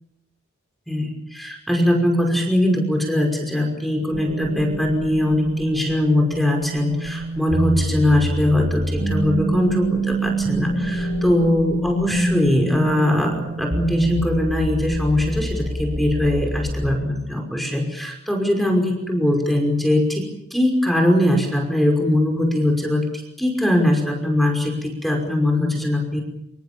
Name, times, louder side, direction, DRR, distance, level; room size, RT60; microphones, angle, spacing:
voice 1, 0.9-23.1 23.4-26.2, left 1 dB, ahead, 2 dB, 5.6 m, -21 dB
sound 1, 4.1-17.0, right 1 dB, 35° right, 4.9 m, -26 dB
27.5 x 27.0 x 7.1 m, 0.81 s
head